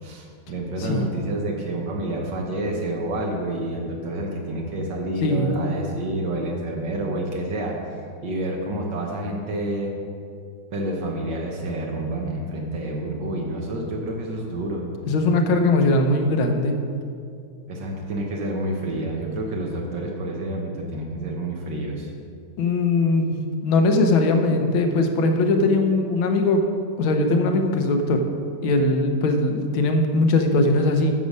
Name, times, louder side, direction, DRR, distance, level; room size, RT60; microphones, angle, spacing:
voice 1, 0.0-7.8 8.2-9.9 10.7-14.9 17.7-22.1, right 1 dB, 65° right, 0 dB, 1.6 m, -28 dB
voice 2, 5.2-5.6 15.1-16.7 22.6-23.3 23.6-26.6 27.0-28.2 28.6-31.1, left 2 dB, 75° left, 5 dB, 1.7 m, -20 dB
9.6 x 6.7 x 5.3 m, 2.3 s
omnidirectional pair, 2.3 m